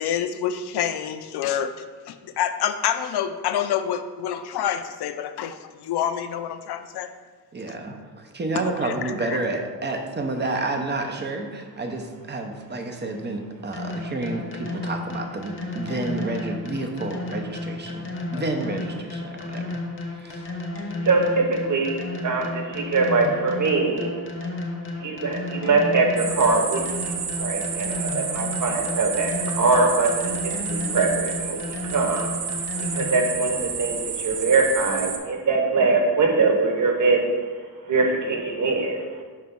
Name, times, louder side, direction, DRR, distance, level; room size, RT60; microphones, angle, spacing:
voice 1, 0.0-7.1 8.6-9.4, left 9 dB, 75° left, 9 dB, 0.5 m, -27 dB
voice 2, 7.5-19.8 20.1-20.4, right 2 dB, 25° right, 4 dB, 0.6 m, -30 dB
sound 1, 13.7-33.4, left 2 dB, 30° left, 0.8 m, -33 dB
voice 3, 21.0-24.1 25.0-27.1 27.4-32.3 32.8-37.3 37.9-39.2, right 3 dB, 50° right, 2 dB, 1.1 m, -23 dB
sound 2, 26.2-35.2, right 7 dB, 90° right, 0.7 m, -30 dB
5.8 x 3.2 x 5.2 m, 1.4 s
wide cardioid pair, 135°, 40 cm